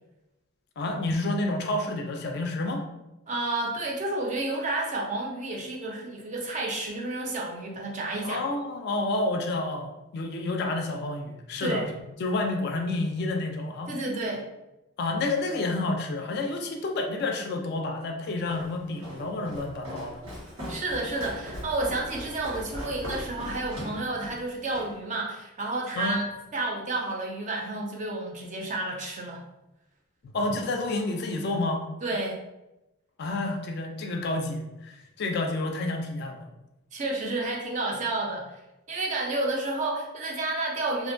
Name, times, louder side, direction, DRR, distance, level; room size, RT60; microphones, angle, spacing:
voice 1, 0.8-2.8 8.2-11.9 12.2-13.9 15.0-20.2 26.0-26.2 30.2-31.8 33.2-36.5, left 2 dB, 50° left, 3 dB, 0.3 m, -29 dB
voice 2, 3.3-8.4 11.6-11.9 13.9-14.4 20.7-26.3 26.5-29.4 32.0-32.3 36.9-38.4 38.9-41.1, right 2 dB, 35° right, -1 dB, 0.4 m, -30 dB
Walk footsteps, 18.5-24.9, equal, 85° right, 1.3 m, -39 dB
2.5 x 2.1 x 2.5 m, 0.96 s
head